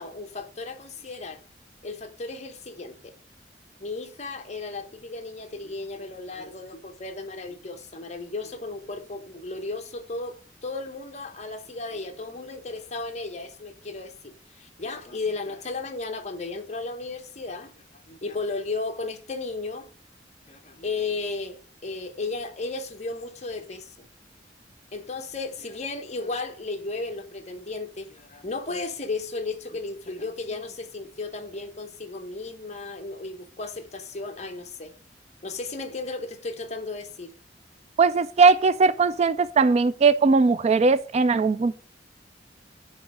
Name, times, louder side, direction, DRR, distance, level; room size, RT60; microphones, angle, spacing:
voice 1, 0.0-1.4 1.8-3.1 3.8-19.9 20.5-24.1 24.9-34.9 35.4-37.3, left 3 dB, 40° left, 1.0 m, -34 dB
voice 2, 38.0-41.7, right 4 dB, 35° right, 0.3 m, -19 dB
9.5 x 3.2 x 6.0 m
head